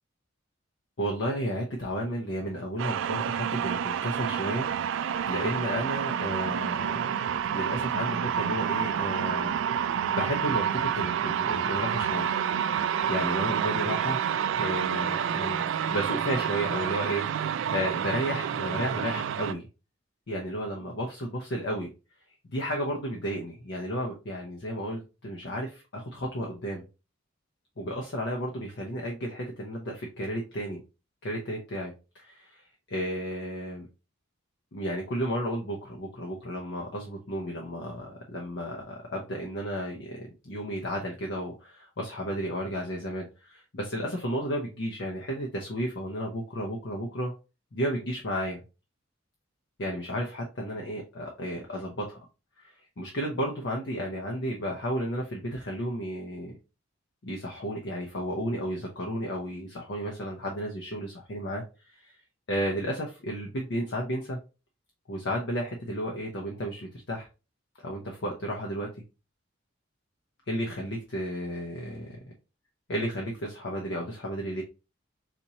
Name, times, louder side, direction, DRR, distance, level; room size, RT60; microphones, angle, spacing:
voice 1, 1.0-7.1 7.5-12.3 13.1-14.2 14.5-15.6 15.9-19.7 20.3-21.9 22.4-26.8 27.8-30.8 31.2-33.9 34.7-47.3 47.7-48.6 49.8-52.2 52.6-56.6 57.2-62.2 62.5-64.4 65.1-67.3 67.8-68.9 70.5-72.2 72.9-74.6, equal, 60° left, 0 dB, 0.8 m, -33 dB
sound 1, 2.8-19.5, right 8 dB, 65° right, 0.3 m, -29 dB
4.2 x 2.9 x 2.7 m, 0.30 s
head